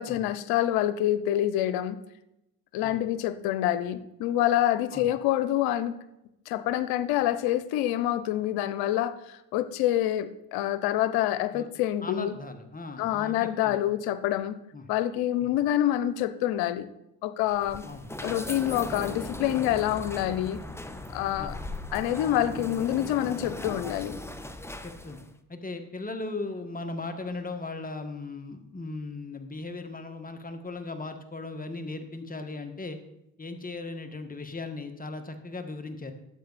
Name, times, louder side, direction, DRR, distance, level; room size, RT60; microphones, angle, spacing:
voice 1, 0.0-2.0 2.7-5.9 6.5-12.3 13.0-14.6 14.9-16.9 17.2-17.8 18.2-20.6 21.1-21.6 21.9-24.2, left 12 dB, 85° left, 13 dB, 0.8 m, -27 dB
voice 2, 12.0-13.8 14.7-14.9 15.4-15.5 17.8-18.1 21.4-21.6 24.8-25.2 25.5-33.0 33.4-36.1, left 3 dB, 25° left, 7 dB, 1.8 m, -37 dB
sound 1, 17.5-25.3, left 1 dB, 5° left, 1.1 m, -38 dB
12.5 x 8.3 x 4.2 m, 0.87 s
supercardioid pair, 65°, 37 cm